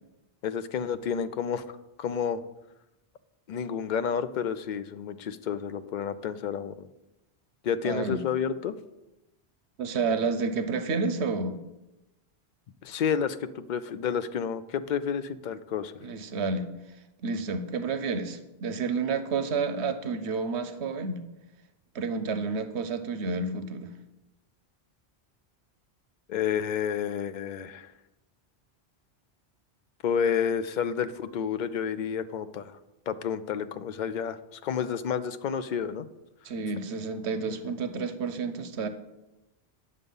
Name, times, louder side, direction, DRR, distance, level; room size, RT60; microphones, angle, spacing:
voice 1, 0.4-2.4 3.5-6.9 7.6-8.8 12.8-15.9 26.3-27.9 30.0-32.8 33.1-36.1, left 7 dB, 55° left, 12 dB, 0.6 m, -30 dB
voice 2, 7.8-8.2 9.8-11.6 16.0-16.7 17.2-21.2 21.9-23.9 36.4-38.9, right 4 dB, 90° right, 10 dB, 1.1 m, -30 dB
9.8 x 6.6 x 5.4 m, 0.97 s
omnidirectional pair, 1.1 m